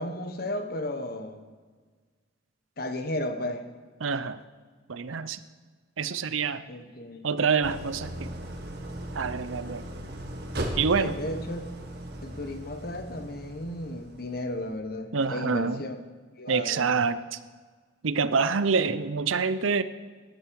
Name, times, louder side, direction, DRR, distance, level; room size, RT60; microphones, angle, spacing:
voice 1, 0.0-1.4 2.8-3.6 6.7-7.3 10.9-11.6 12.2-16.0 16.4-16.8, left 1 dB, 50° left, 8 dB, 1.2 m, -34 dB
voice 2, 4.0-4.4 4.9-5.4 6.0-6.6 7.2-8.3 9.1-9.9 10.8-11.2 15.1-15.8 16.5-17.4 18.0-19.8, right 5 dB, 90° right, 14 dB, 0.7 m, -26 dB
Idling, 7.6-14.7, right 1 dB, 55° right, 1.7 m, -38 dB
17.5 x 11.5 x 4.7 m, 1.5 s
head